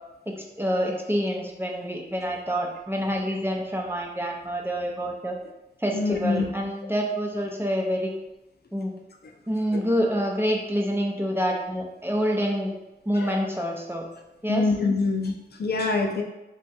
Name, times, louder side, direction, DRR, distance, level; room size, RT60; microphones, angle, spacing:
voice 1, 0.3-5.3 5.8-8.1 8.7-8.9 9.5-12.7 13.1-14.1 14.4-14.7, equal, 15° right, 0 dB, 0.6 m, -27 dB
voice 2, 5.9-6.5 9.7-9.8 13.1-13.4 14.5-16.2, left 3 dB, 65° left, 2 dB, 0.5 m, -25 dB
3.5 x 2.2 x 4.1 m, 0.95 s
wide cardioid pair, 85°, 18 cm